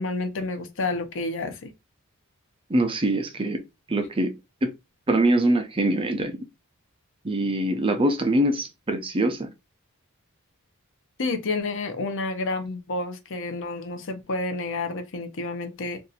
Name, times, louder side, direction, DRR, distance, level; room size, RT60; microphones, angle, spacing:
voice 1, 0.0-1.7 11.2-16.0, left 3 dB, 60° left, 0.7 m, -30 dB
voice 2, 2.7-3.6 3.9-4.3 4.6-4.7 5.1-6.4 7.2-9.5, right 1 dB, 25° right, 0.6 m, -23 dB
2.6 x 2.5 x 4.1 m
head